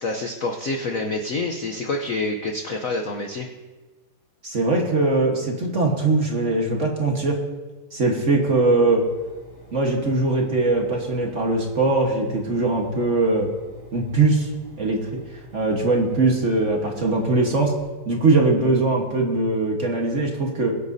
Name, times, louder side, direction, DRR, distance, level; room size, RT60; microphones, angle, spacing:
voice 1, 0.0-3.5, left 2 dB, 60° left, 3 dB, 0.9 m, -27 dB
voice 2, 4.4-7.4 7.9-9.0 9.7-13.5 13.9-14.5 14.8-15.2 15.5-17.7 18.0-20.7, right 2 dB, 40° right, 0 dB, 1.4 m, -21 dB
Engine, 8.8-17.8, right 3 dB, 40° left, 5.2 m, -48 dB
22.5 x 8.4 x 2.7 m, 1.2 s
omnidirectional pair, 2.3 m